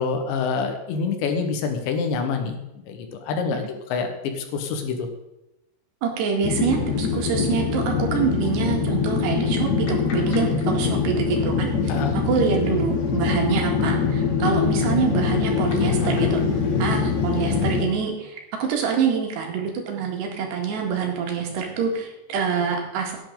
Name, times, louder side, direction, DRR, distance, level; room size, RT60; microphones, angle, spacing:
voice 1, 0.0-5.1 11.9-12.2, left 5 dB, 85° left, 5 dB, 3.8 m, -27 dB
voice 2, 6.0-16.4 16.8-23.2, right 6 dB, 75° right, 1 dB, 4.1 m, -26 dB
sound 1, 6.4-17.8, left 5 dB, 55° left, 2.3 m, -23 dB
16.5 x 9.8 x 4.0 m, 0.92 s
omnidirectional pair, 5.0 m